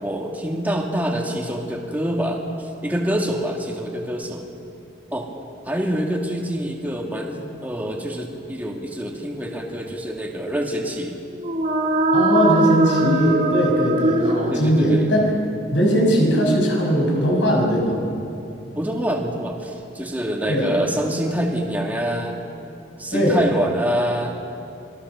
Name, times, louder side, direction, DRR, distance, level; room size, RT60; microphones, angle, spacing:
voice 1, 0.0-4.4 5.1-5.3 5.6-11.2 14.5-15.1 18.7-22.4 23.0-24.3, equal, 10° right, 0 dB, 2.2 m, -26 dB
sound 1, 11.3-15.2, right 2 dB, 35° right, 1.3 m, -21 dB
voice 2, 12.1-15.3 15.7-18.0 20.5-20.7 23.1-23.4, equal, 75° left, 0 dB, 6.3 m, -19 dB
26.5 x 20.5 x 6.9 m, 2.9 s
head